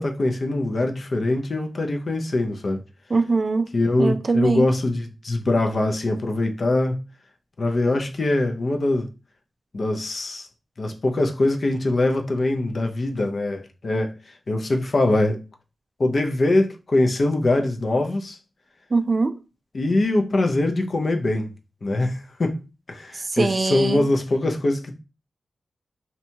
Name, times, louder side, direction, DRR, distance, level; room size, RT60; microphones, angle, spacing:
voice 1, 0.0-2.8 3.7-7.0 7.6-9.1 9.7-10.5 10.8-14.1 14.5-15.4 16.0-18.4 19.7-21.5 21.8-22.6 22.9-24.9, left 2 dB, 55° left, 0.5 m, -23 dB
voice 2, 3.1-3.7 4.0-4.7 18.9-19.4 23.1-24.0, right 3 dB, 45° right, 0.3 m, -22 dB
2.7 x 2.2 x 2.7 m
cardioid pair, 60°, 0 cm